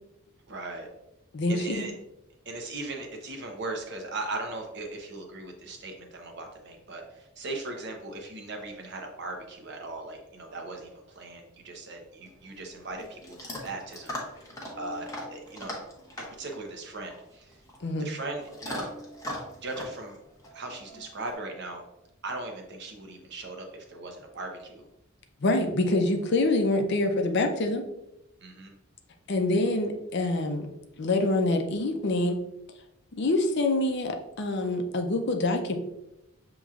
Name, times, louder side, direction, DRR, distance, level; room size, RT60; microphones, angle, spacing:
voice 1, 0.5-0.9 1.5-1.9 2.4-15.7 16.2-17.6 18.0-18.9 19.6-20.2 20.5-21.8 22.2-24.9 28.4-28.7, right 2 dB, 55° right, 2 dB, 0.8 m, -38 dB
voice 2, 1.3-1.9 17.8-18.1 25.4-27.8 29.3-30.7 31.0-32.4 33.2-35.8, left 2 dB, 55° left, 5 dB, 0.5 m, -26 dB
Chewing mastication / Dog, 12.2-21.3, left 1 dB, 15° left, 0.8 m, -41 dB
6.7 x 3.0 x 2.4 m, 0.87 s
head